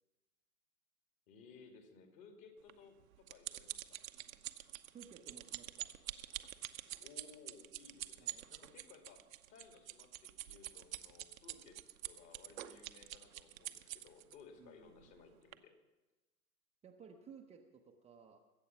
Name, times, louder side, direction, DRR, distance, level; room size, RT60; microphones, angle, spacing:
voice 1, 1.3-4.1 7.0-11.8 12.0-15.7, left 5 dB, 40° left, 5 dB, 2.6 m, -60 dB
sound 1, 2.7-14.4 15.0-15.2 15.5-15.6, right 14 dB, 60° right, 0.9 m, -46 dB
voice 2, 4.9-6.0 8.2-8.5 14.6-15.1 16.8-18.4, right 6 dB, 15° right, 2 dB, 0.7 m, -57 dB
21.0 x 8.3 x 5.9 m, 1.2 s
figure-of-eight pair, 100°, 46 cm